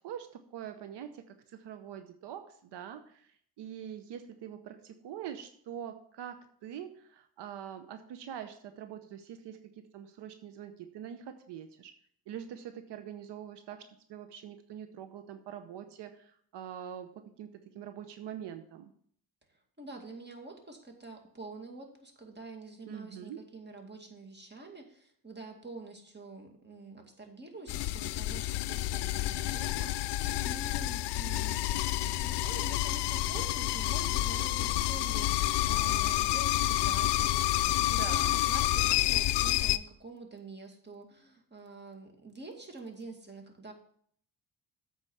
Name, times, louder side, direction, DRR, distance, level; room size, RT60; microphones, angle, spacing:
voice 1, 0.0-11.9 12.3-17.5 17.7-18.9 22.9-23.4 38.0-38.3, right 9 dB, 80° right, 8 dB, 0.8 m, -44 dB
voice 2, 19.8-30.2 30.4-31.7 32.0-43.7, right 3 dB, 25° right, 2 dB, 2.2 m, -47 dB
sound 1, 27.7-39.8, left 15 dB, 85° left, 0.5 m, -29 dB
8.3 x 4.8 x 7.1 m, 0.62 s
cardioid pair, 75°, 41 cm